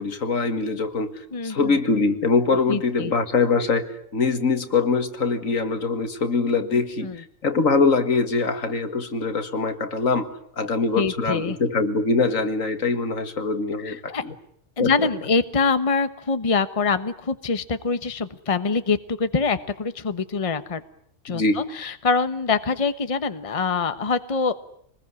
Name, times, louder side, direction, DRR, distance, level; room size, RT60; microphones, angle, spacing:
voice 1, 0.0-14.4 14.8-15.1 21.3-21.6, left 4 dB, 80° left, 9 dB, 2.3 m, -23 dB
voice 2, 1.3-1.7 2.7-3.1 7.0-7.2 10.9-11.6 13.8-14.2 14.8-20.8 21.2-24.5, left 4 dB, 25° left, 12 dB, 1.2 m, -24 dB
26.0 x 20.5 x 9.7 m, 0.68 s
omnidirectional pair, 1.4 m